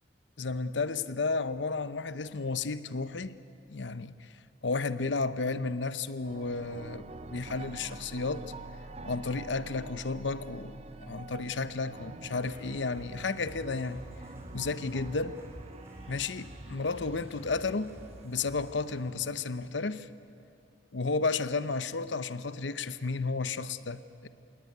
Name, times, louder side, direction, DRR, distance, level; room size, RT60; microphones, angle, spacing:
voice 1, 0.4-3.3 3.7-4.1 4.6-8.5 9.0-14.0 14.5-15.4 16.1-18.0 18.2-20.1 20.9-24.3, left 4 dB, 85° left, 0.9 m, -32 dB
sound 1, 6.2-19.6, right 3 dB, 35° right, 0.7 m, -47 dB
sound 2, 12.4-19.7, equal, 15° right, 4.0 m, -50 dB
27.5 x 18.5 x 9.5 m
head